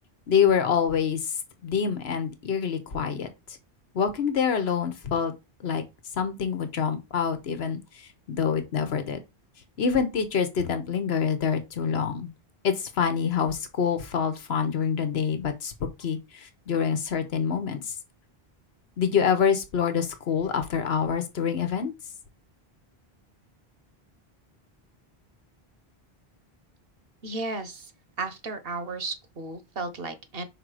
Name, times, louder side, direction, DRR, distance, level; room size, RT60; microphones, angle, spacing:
voice 1, 0.3-1.3 1.6-3.3 3.9-5.3 5.6-5.8 6.2-7.8 8.3-9.2 9.8-12.3 12.6-17.9 19.0-21.9, left 7 dB, 85° left, 1.2 m, -26 dB
voice 2, 27.2-27.9 28.2-30.4, right 3 dB, 65° right, 1.2 m, -34 dB
5.3 x 3.8 x 4.8 m
omnidirectional pair, 1.0 m